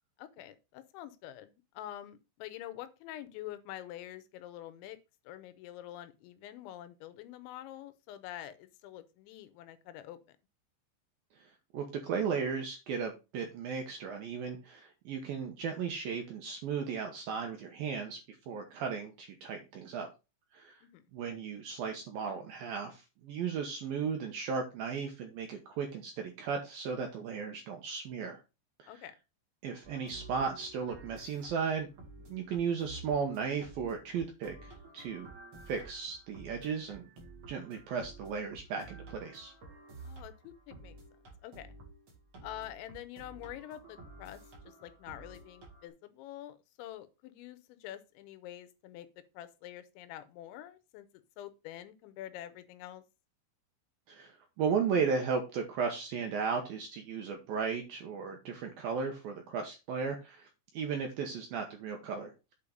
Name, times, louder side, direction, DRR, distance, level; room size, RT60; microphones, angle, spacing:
voice 1, 0.2-5.0 5.3-10.2 20.8-21.0 28.9-29.2 40.0-40.9 41.4-41.7 42.4-49.1 49.3-51.1 51.4-53.0, left 12 dB, 80° left, 3.0 m, -46 dB
voice 2, 11.7-18.2 18.5-20.1 20.5-20.8 21.1-28.4 28.8-28.9 29.6-31.9 32.3-35.3 35.7-37.1 37.5-39.5 54.1-60.5 60.7-62.3, right 6 dB, 75° right, 2.2 m, -35 dB
sound 1, 29.8-45.9, right 3 dB, 35° right, 2.2 m, -52 dB
8.5 x 4.6 x 5.1 m
omnidirectional pair, 5.6 m